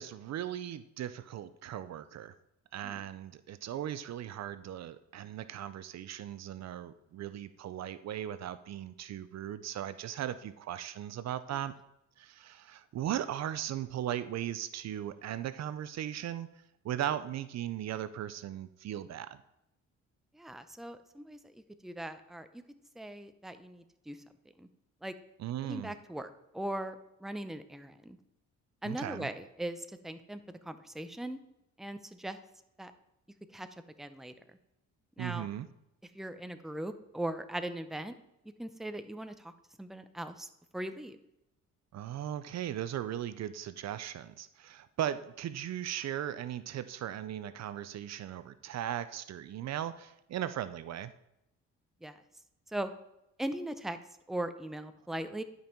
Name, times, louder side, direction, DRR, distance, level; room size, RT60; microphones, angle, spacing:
voice 1, 0.0-2.3 2.7-11.7 12.2-16.5 16.8-19.4 25.4-25.9 28.8-29.3 35.2-35.7 41.9-51.1, right 11 dB, 60° right, 14 dB, 0.6 m, -38 dB
voice 2, 20.3-22.6 23.0-24.2 24.6-24.7 25.0-25.1 25.6-28.2 28.8-31.4 31.8-32.4 32.8-32.9 33.5-33.7 34.0-34.3 35.2-35.5 36.1-38.2 38.6-39.5 39.8-40.5 40.7-41.2 52.0-52.2 52.7-52.9 53.4-54.0 54.3-55.4, right 1 dB, ahead, 9 dB, 0.7 m, -39 dB
11.0 x 5.5 x 4.5 m, 0.83 s
cardioid pair, 90°, 30 cm